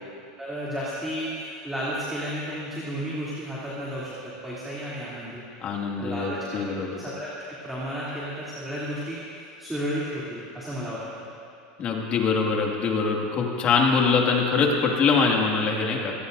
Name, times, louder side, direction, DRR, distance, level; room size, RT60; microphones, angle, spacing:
voice 1, 0.4-5.4 6.0-7.3 7.6-9.2 9.6-11.3, equal, 5° right, -9 dB, 3.1 m, -33 dB
voice 2, 5.6-7.0 11.8-16.1, left 4 dB, 35° left, 0 dB, 2.2 m, -23 dB
26.5 x 18.5 x 2.7 m, 2.5 s
supercardioid pair, 140°, 4 cm